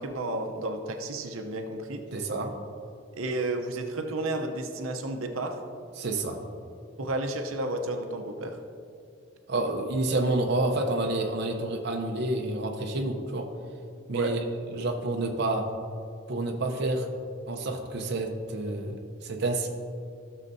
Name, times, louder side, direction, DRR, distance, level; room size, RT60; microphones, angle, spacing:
voice 1, 0.0-2.0 3.1-5.6 7.0-8.6 14.1-14.3, right 2 dB, 85° right, 5 dB, 0.7 m, -32 dB
voice 2, 2.1-2.5 6.0-6.4 9.5-13.5 14.1-14.4 14.7-15.7 16.3-17.1 17.5-19.7, right 2 dB, 55° right, 2 dB, 0.7 m, -29 dB
15.0 x 6.6 x 2.7 m, 2.4 s
head